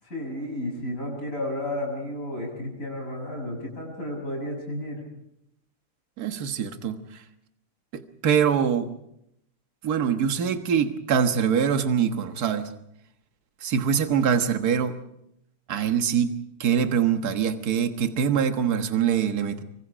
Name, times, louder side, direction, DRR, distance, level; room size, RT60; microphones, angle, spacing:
voice 1, 0.0-5.0, left 1 dB, 35° left, 1 dB, 7.4 m, -32 dB
voice 2, 6.2-7.2 7.9-8.9 9.8-12.7 13.6-14.9 15.7-19.6, right 7 dB, 50° right, 7 dB, 1.8 m, -24 dB
25.5 x 24.5 x 5.1 m, 0.79 s
omnidirectional pair, 2.3 m